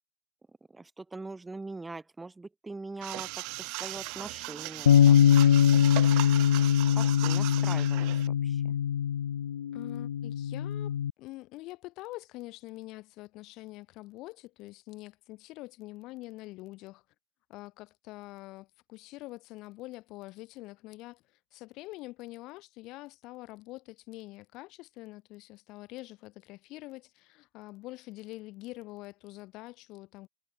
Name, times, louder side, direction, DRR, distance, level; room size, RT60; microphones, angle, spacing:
voice 1, 0.7-5.4 6.9-8.8, right 3 dB, 10° right, 2.5 m, -43 dB
sound 1, 3.0-8.3, right 28 dB, 45° right, 2.4 m, -38 dB
Bass guitar, 4.9-11.1, left 9 dB, 65° left, 0.4 m, -23 dB
voice 2, 9.7-17.0 17.5-21.2 21.5-30.3, left 20 dB, 40° left, 3.5 m, -45 dB
figure-of-eight pair, 90°, 0 cm